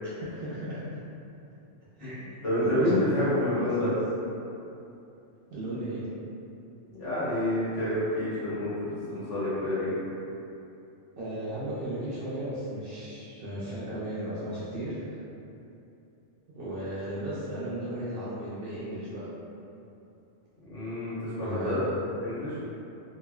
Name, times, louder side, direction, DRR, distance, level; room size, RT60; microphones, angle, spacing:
voice 1, 0.2-1.0 2.0-2.3 2.6-4.0 5.5-6.1 9.0-9.3 11.2-15.2 16.5-19.2 21.4-21.9, right 1 dB, 60° right, -9 dB, 0.6 m, -35 dB
voice 2, 2.4-3.9 6.9-10.0 20.7-21.8 22.2-22.6, left 1 dB, 70° left, -12 dB, 1.4 m, -28 dB
3.1 x 2.1 x 2.2 m, 2.8 s
omnidirectional pair, 1.3 m